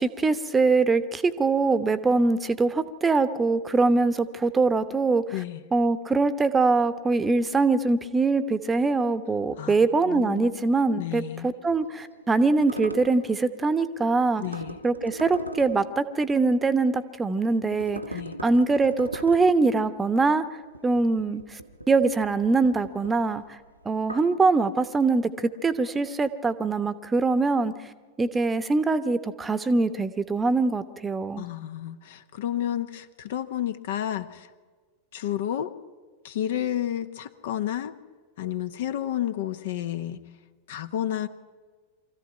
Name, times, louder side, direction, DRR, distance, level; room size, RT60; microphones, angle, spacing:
voice 1, 0.0-5.2 5.7-14.4 14.8-20.5 20.8-21.4 21.9-23.4 23.8-27.7 28.2-31.5, right 3 dB, 15° right, 13 dB, 1.0 m, -23 dB
voice 2, 5.3-5.6 9.6-9.8 10.1-10.6 11.0-11.5 14.4-14.8 18.1-18.3 31.4-34.5 35.1-35.7 36.2-37.9 38.4-40.2 40.7-41.3, left 11 dB, 55° left, 11 dB, 1.0 m, -31 dB
sound 1, 11.6-17.2 17.6-24.4, right 1 dB, 90° right, 1.0 m, -41 dB
24.0 x 14.5 x 9.2 m, 1.5 s
figure-of-eight pair, 90°, 0 cm